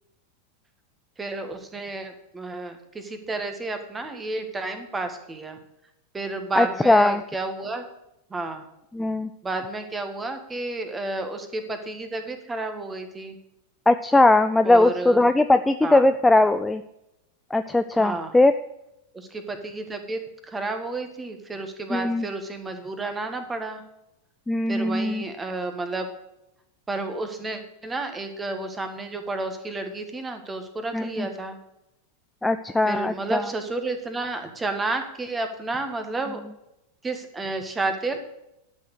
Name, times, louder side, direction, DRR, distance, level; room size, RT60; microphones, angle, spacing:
voice 1, 1.2-5.6 6.1-7.8 8.3-8.6 9.4-13.4 14.6-15.3 15.8-16.0 17.9-18.3 19.1-23.8 24.7-26.1 26.9-31.6 32.8-36.4 37.0-38.2, right 2 dB, 15° right, 7 dB, 1.6 m, -31 dB
voice 2, 6.6-7.2 8.9-9.3 13.9-16.8 17.5-18.5 21.9-22.3 24.5-25.2 30.9-31.3 32.4-33.4, left 2 dB, 5° left, 10 dB, 0.4 m, -19 dB
11.5 x 6.2 x 6.5 m, 0.87 s
figure-of-eight pair, 90°, 0 cm